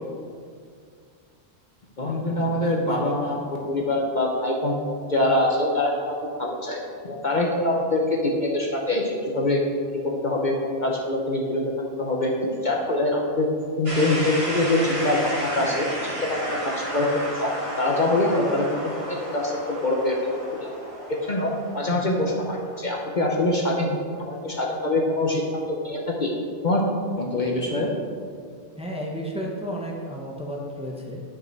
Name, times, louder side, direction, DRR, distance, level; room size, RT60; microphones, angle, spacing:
voice 1, 2.0-3.4 3.7-4.8 5.1-9.6 10.0-11.6 12.0-13.5 13.8-17.1 17.3-18.7 19.1-20.2 20.6-20.7 21.1-23.9 24.2-26.3 26.6-26.8 27.2-27.9, left 1 dB, 45° left, -1 dB, 1.0 m, -24 dB
sound 1, 13.9-23.7, equal, 30° right, 1.3 m, -33 dB
voice 2, 28.8-31.2, equal, 5° right, -2 dB, 1.0 m, -32 dB
10.5 x 6.3 x 4.5 m, 2.2 s
omnidirectional pair, 1.2 m